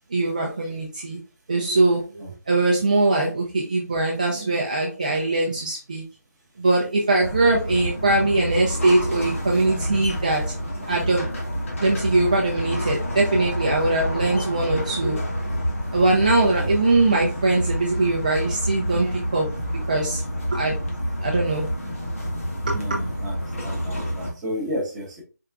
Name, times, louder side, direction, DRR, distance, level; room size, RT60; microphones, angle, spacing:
voice 1, 0.1-1.2 1.5-6.0 6.6-10.5 10.9-11.4 11.8-15.2 15.9-19.5 19.7-20.2 20.5-20.7 21.2-21.7 22.7-23.0, right 2 dB, 25° right, -2 dB, 0.5 m, -22 dB
sound 1, 7.2-24.3, equal, 45° left, 1.4 m, -28 dB
voice 2, 22.7-23.4 23.6-25.2, equal, 5° right, -9 dB, 1.0 m, -31 dB
4.6 x 3.5 x 2.4 m, 0.34 s
hypercardioid pair, 175°, 10 cm